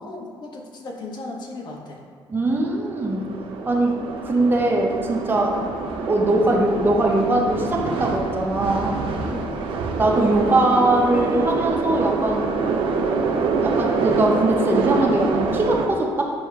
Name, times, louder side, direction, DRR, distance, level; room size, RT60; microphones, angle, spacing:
voice 1, 0.0-2.0 5.5-5.7 9.2-9.8, left 2 dB, 50° left, 1 dB, 0.9 m, -36 dB
voice 2, 2.3-3.4 3.7-5.6 6.1-9.0 10.0-12.6 13.6-16.3, right 2 dB, 20° right, -1 dB, 0.7 m, -21 dB
sound 1, 2.6-15.9, right 4 dB, 70° right, 0.6 m, -26 dB
7.8 x 2.7 x 5.8 m, 2.1 s
cardioid pair, 160°, 9 cm